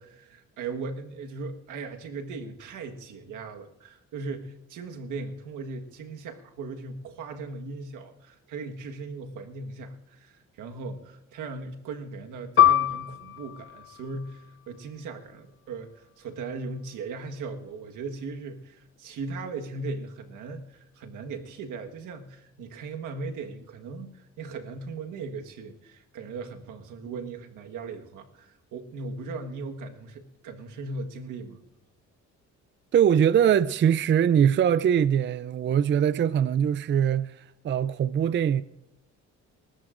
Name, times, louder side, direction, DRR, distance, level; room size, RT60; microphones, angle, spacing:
voice 1, 0.0-31.6, right 3 dB, 85° right, 1.5 m, -38 dB
Piano, 12.6-17.6 18.0-18.1 18.9-19.3, left 11 dB, 45° left, 0.7 m, -26 dB
voice 2, 32.9-38.6, right 9 dB, 40° right, 0.4 m, -22 dB
28.5 x 13.5 x 2.5 m
cardioid pair, 90°, 30 cm